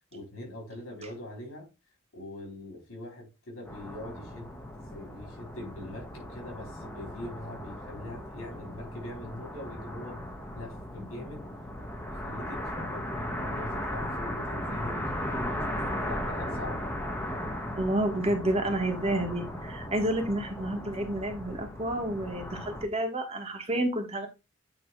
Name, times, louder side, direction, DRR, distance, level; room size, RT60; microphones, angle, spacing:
voice 1, 0.1-1.7 2.1-10.2 10.5-11.4 12.2-16.9, left 1 dB, 80° left, 4.6 m, -43 dB
sound 1, 3.7-22.8, left 1 dB, 10° left, 1.3 m, -37 dB
voice 2, 17.7-24.3, right 1 dB, 30° right, 1.5 m, -30 dB
8.9 x 3.3 x 4.6 m
head